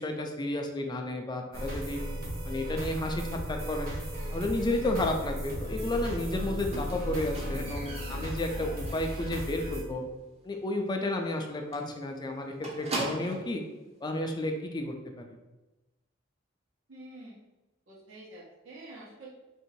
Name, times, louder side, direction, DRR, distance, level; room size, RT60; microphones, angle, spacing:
voice 1, 0.0-2.0 2.4-3.9 4.3-10.0 10.4-13.6 14.0-15.2, left 1 dB, 20° left, 3 dB, 0.4 m, -32 dB
sound 1, 1.5-9.8, equal, 50° right, 1.1 m, -36 dB
Squeak, 6.7-9.5 9.8-10.2 10.5-10.6 11.0-11.1 11.3-11.5 11.7-13.6 14.4-14.5, right 2 dB, 30° right, 0.7 m, -39 dB
voice 2, 16.9-17.4 17.9-19.3, right 2 dB, 85° right, -5 dB, 1.1 m, -47 dB
2.9 x 2.7 x 4.4 m, 1.1 s
head